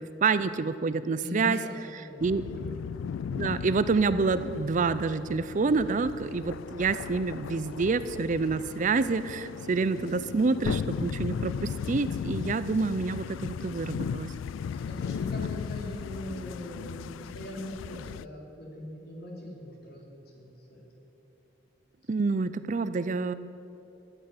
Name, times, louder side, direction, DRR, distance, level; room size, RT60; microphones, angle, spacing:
voice 1, 0.0-1.6 1.9-2.4 3.3-14.3 22.1-23.3, right 4 dB, 40° right, 13 dB, 0.4 m, -27 dB
voice 2, 1.2-2.8 14.7-20.8, left 1 dB, 55° left, -1 dB, 3.5 m, -41 dB
sound 1, 2.2-18.3, left 7 dB, 85° left, 0.3 m, -36 dB
14.0 x 9.0 x 9.5 m, 2.8 s
head